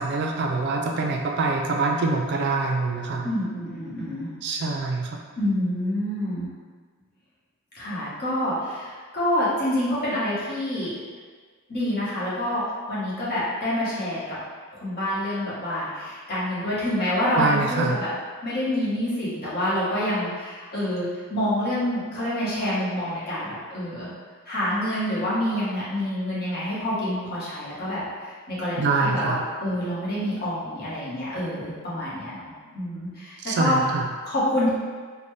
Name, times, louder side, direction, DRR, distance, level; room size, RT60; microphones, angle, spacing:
voice 1, 0.0-3.3 4.4-5.1 17.4-18.0 28.8-29.4 33.4-34.1, right 3 dB, 50° right, 2 dB, 0.3 m, -25 dB
voice 2, 3.2-4.3 5.3-6.5 7.7-10.9 11.7-12.6 12.9-14.4 14.7-18.1 18.4-24.1 24.5-28.0 28.5-33.9 34.3-34.7, left 1 dB, 45° left, -9 dB, 1.1 m, -27 dB
3.9 x 2.1 x 3.2 m, 1.5 s
head